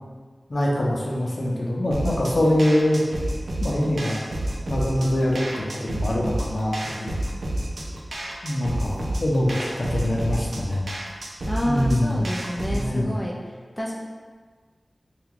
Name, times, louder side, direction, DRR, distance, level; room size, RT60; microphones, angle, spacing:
voice 1, 0.5-3.0 3.6-4.2 4.7-7.2 8.4-9.5 9.8-10.9 11.6-12.3 12.7-13.1, left 1 dB, 60° left, -3 dB, 0.6 m, -24 dB
sound 1, 1.9-12.9, right 1 dB, 80° right, 0.4 m, -30 dB
voice 2, 2.1-2.6 11.5-13.3 13.8-14.0, equal, 15° left, -4 dB, 0.5 m, -29 dB
2.8 x 2.4 x 3.7 m, 1.5 s
cardioid pair, 40°, 0 cm